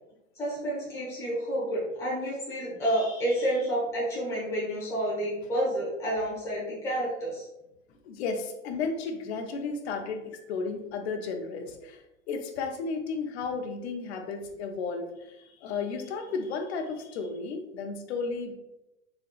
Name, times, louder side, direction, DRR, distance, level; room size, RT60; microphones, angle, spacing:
voice 1, 0.4-7.5, right 1 dB, 10° left, -8 dB, 1.0 m, -29 dB
voice 2, 7.9-18.6, left 4 dB, 60° left, 4 dB, 0.6 m, -34 dB
4.1 x 3.0 x 2.4 m, 0.93 s
supercardioid pair, 175°, 37 cm